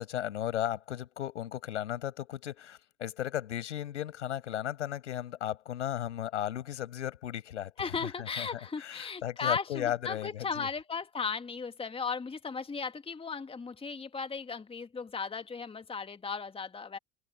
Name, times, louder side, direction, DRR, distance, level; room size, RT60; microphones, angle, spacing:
voice 1, 0.0-8.5 8.8-10.7, left 11 dB, 70° left, 5.6 m, -35 dB
voice 2, 7.8-17.0, left 5 dB, 15° left, 2.0 m, -36 dB
figure-of-eight pair, 70°, 37 cm